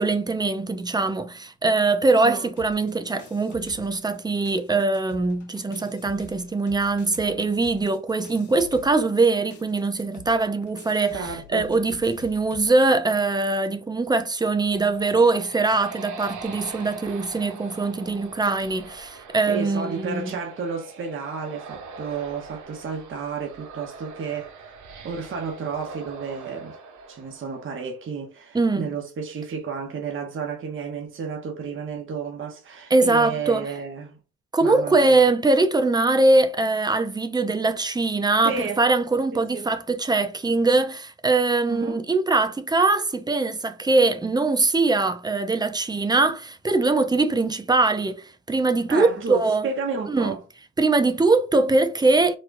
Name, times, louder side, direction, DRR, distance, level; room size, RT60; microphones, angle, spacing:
voice 1, 0.0-20.3 28.5-28.9 32.9-33.7 34.5-49.7 50.1-50.3 50.8-52.4, right 3 dB, 15° right, 0.5 m, -22 dB
sound 1, 2.6-4.2 4.5-12.7, left 4 dB, 75° left, 1.2 m, -46 dB
voice 2, 11.1-11.7 19.5-24.7 25.0-26.8 27.1-34.2 34.6-35.3 38.4-38.8 39.3-39.7 41.7-42.0 48.9-50.4, right 5 dB, 40° right, 0.9 m, -32 dB
sound 2, 14.6-28.1, right 4 dB, 75° right, 1.0 m, -42 dB
4.1 x 2.2 x 2.5 m
cardioid pair, 90°, 30 cm